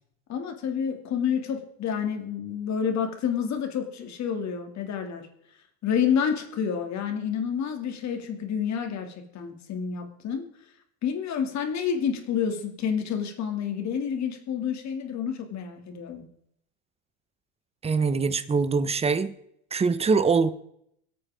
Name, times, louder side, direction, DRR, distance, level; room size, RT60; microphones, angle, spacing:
voice 1, 0.3-5.3 5.8-10.5 11.0-16.3, left 7 dB, 40° left, 4 dB, 2.6 m, -29 dB
voice 2, 17.8-19.3 19.7-20.5, right 4 dB, 15° right, 13 dB, 0.8 m, -23 dB
24.5 x 8.6 x 3.6 m, 0.72 s
supercardioid pair, 110°, 41 cm